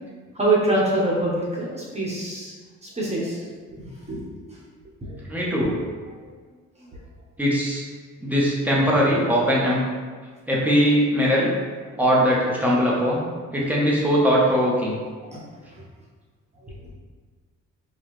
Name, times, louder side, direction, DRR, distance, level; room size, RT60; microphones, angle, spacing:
voice 1, 0.3-2.5 2.8-3.4 3.7-4.6 5.0-5.2 6.8-6.9 11.9-12.0 15.2-15.4 15.7-15.8, right 2 dB, 20° right, -5 dB, 1.3 m, -25 dB
voice 2, 5.3-5.8 7.4-7.8 8.2-9.8 10.5-11.5 12.0-13.2 13.5-15.0, equal, 5° right, -5 dB, 1.0 m, -20 dB
4.7 x 2.4 x 3.1 m, 1.5 s
cardioid pair, 90°, 30 cm